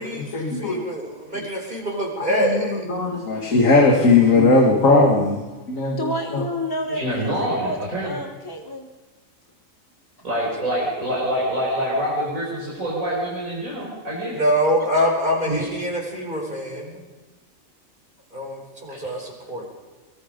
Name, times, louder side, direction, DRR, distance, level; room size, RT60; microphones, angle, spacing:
voice 1, 0.0-0.8 1.3-1.5 2.2-6.5, left 3 dB, 75° left, 0 dB, 2.4 m, -19 dB
voice 2, 0.6-2.9 14.3-17.0 18.3-19.7, equal, 35° right, -1 dB, 4.8 m, -25 dB
voice 3, 6.0-7.3 7.6-8.9, left 1 dB, 15° left, 3 dB, 1.3 m, -29 dB
voice 4, 6.9-8.2 10.2-14.4 15.4-15.7 18.9-19.0, equal, 80° right, -5 dB, 5.3 m, -26 dB
23.0 x 22.0 x 5.3 m, 1.2 s
omnidirectional pair, 1.4 m